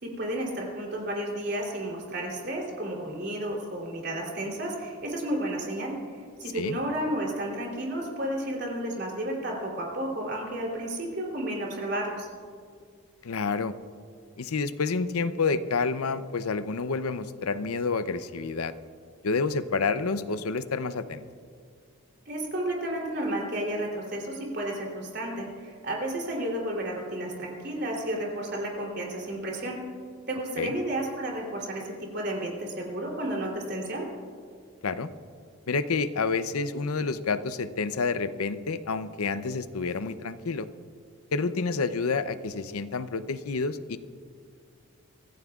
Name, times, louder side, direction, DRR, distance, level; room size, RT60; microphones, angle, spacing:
voice 1, 0.0-12.3 22.2-29.8 30.3-34.1, right 1 dB, 50° right, -2 dB, 3.2 m, -32 dB
voice 2, 13.2-13.7 14.4-18.7 19.2-21.2 30.6-30.7 34.8-35.1 35.7-40.7 41.3-44.0, left 4 dB, 85° left, 12 dB, 0.6 m, -29 dB
25.0 x 14.5 x 2.4 m, 2.2 s
head